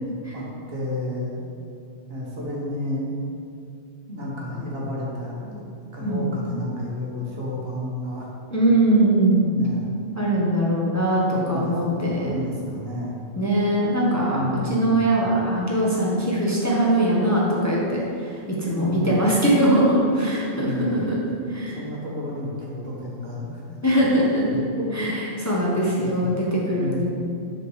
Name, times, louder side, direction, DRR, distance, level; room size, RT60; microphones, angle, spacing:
voice 1, 0.3-1.5 2.1-3.1 4.1-5.6 5.9-8.3 8.8-9.0 9.4-9.9 11.2-13.2 14.2-15.0 18.6-19.2 20.5-21.1 21.6-23.6 24.4-25.2 25.9-26.3 26.7-27.1, left 1 dB, 55° right, -5 dB, 1.7 m, -31 dB
voice 2, 8.5-9.4 10.1-12.3 13.3-21.2 21.5-21.8 23.8-24.4 24.9-27.1, right 1 dB, 15° left, -5 dB, 1.1 m, -21 dB
6.6 x 4.3 x 6.2 m, 2.5 s
omnidirectional pair, 1.2 m